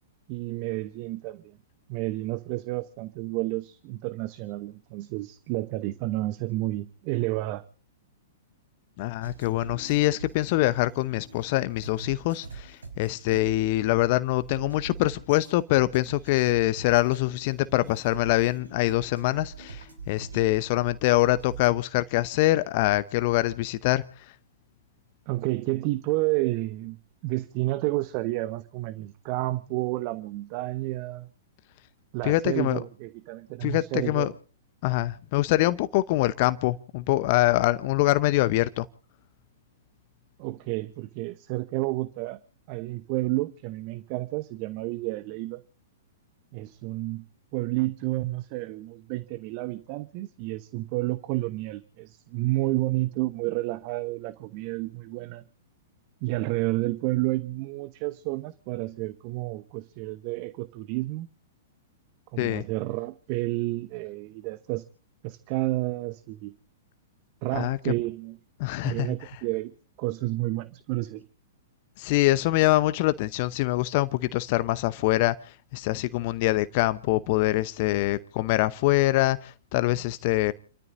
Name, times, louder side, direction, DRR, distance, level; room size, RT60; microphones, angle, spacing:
voice 1, 0.3-1.6 1.9-7.6 25.3-27.0 27.2-31.3 32.1-34.3 40.4-42.4 42.7-45.6 46.5-47.2 47.5-55.4 56.2-61.3 62.3-64.8 65.2-66.5 67.4-68.4 68.8-69.7 70.0-71.2, right 19 dB, 40° right, 0.9 m, -30 dB
voice 2, 9.0-24.3 32.2-32.8 33.6-34.3 34.8-38.9 62.4-62.6 67.5-67.9 68.6-69.1 72.0-80.5, left 17 dB, 45° left, 0.8 m, -24 dB
sound 1, 9.2-21.7, right 5 dB, 80° right, 4.4 m, -44 dB
30.0 x 13.5 x 2.6 m
figure-of-eight pair, 110°, 0 cm